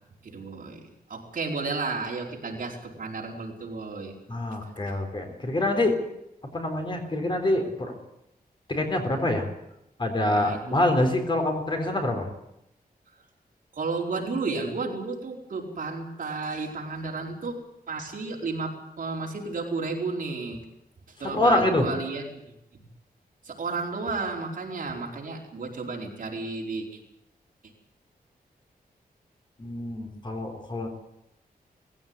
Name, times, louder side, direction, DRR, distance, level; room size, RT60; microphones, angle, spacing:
voice 1, 0.2-0.8 1.1-4.1 10.3-10.8 13.7-17.5 17.9-20.6 21.1-22.4 23.4-27.0, right 3 dB, 60° right, -1 dB, 4.6 m, -32 dB
voice 2, 4.3-6.0 6.5-8.0 8.7-9.5 10.0-12.3 21.2-21.8 29.6-30.9, left 1 dB, 30° left, 4 dB, 3.9 m, -25 dB
19.5 x 16.0 x 9.7 m, 0.83 s
wide cardioid pair, 160°, 16 cm